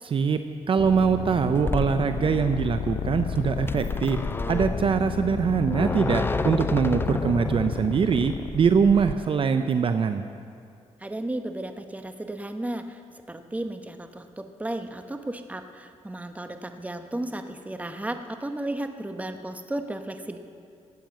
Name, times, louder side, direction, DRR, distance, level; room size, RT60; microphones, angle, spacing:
voice 1, 0.0-0.4 0.7-4.2 4.5-10.2, right 6 dB, 45° right, 9 dB, 0.6 m, -23 dB
sound 1, 0.8-9.2, left 7 dB, 60° left, 0.7 m, -33 dB
sound 2, 1.5-9.1, left 2 dB, 20° left, 0.5 m, -31 dB
voice 2, 11.0-13.0 13.3-20.4, right 1 dB, 10° right, 7 dB, 1.1 m, -34 dB
14.0 x 9.2 x 7.6 m, 2.3 s
cardioid pair, 80°, 12 cm